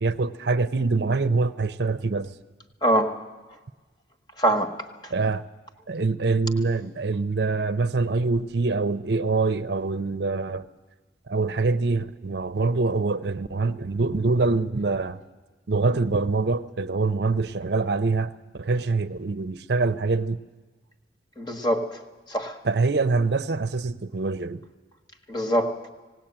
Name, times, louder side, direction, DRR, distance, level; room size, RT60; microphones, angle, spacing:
voice 1, 0.0-2.3 5.1-5.4 5.9-10.6 11.3-15.2 15.7-18.3 18.5-20.4 22.6-24.6, right 3 dB, 65° right, 11 dB, 0.6 m, -24 dB
voice 2, 2.8-3.1 4.4-4.7 21.4-22.0 22.3-22.6 25.3-25.7, right 1 dB, 25° left, 5 dB, 1.5 m, -23 dB
18.5 x 18.0 x 8.8 m, 1.3 s
head